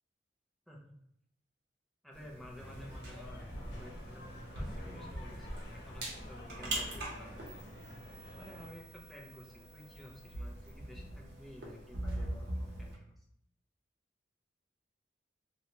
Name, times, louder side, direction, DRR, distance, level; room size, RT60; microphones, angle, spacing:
voice 1, 2.0-7.5 8.3-13.2, left 1 dB, ahead, -3 dB, 0.4 m, -52 dB
sound 1, 2.1-12.9, right 1 dB, 70° right, 0.8 m, -43 dB
sound 2, 2.5-8.7, equal, 85° left, 0.9 m, -49 dB
2.7 x 2.2 x 2.8 m, 0.72 s
head